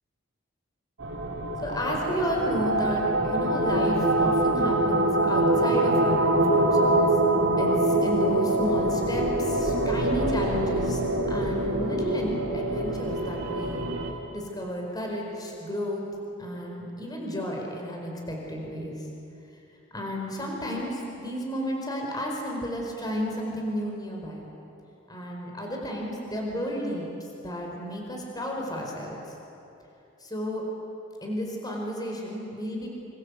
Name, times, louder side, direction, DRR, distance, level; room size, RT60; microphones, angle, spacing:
sound 1, 1.0-14.1, right 1 dB, 80° right, 3.1 m, -24 dB
voice 1, 1.6-7.1 7.6-7.7 8.0-11.0 11.3-13.8 14.3-16.0 16.4-18.9 19.9-24.4 25.1-27.0 27.4-29.2 30.3-30.6 31.2-32.9, equal, 20° left, 0 dB, 4.7 m, -32 dB
26.5 x 26.5 x 8.2 m, 2.9 s
head